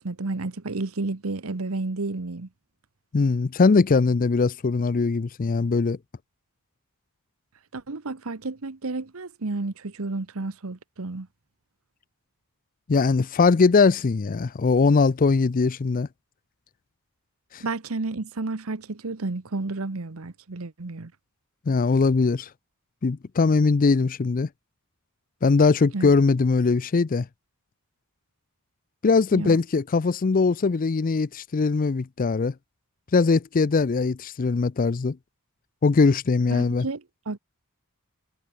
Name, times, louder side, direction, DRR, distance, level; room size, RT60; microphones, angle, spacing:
voice 1, 0.0-2.5 7.7-11.3 17.6-21.1 25.9-26.1 29.3-29.6 36.5-37.4, right 3 dB, 70° right, 1.0 m, -31 dB
voice 2, 3.1-6.0 12.9-16.1 17.5-17.6 21.7-22.5 23.0-24.5 25.4-27.3 29.0-32.5 33.1-35.2 35.8-36.9, left 4 dB, 40° left, 0.4 m, -21 dB
head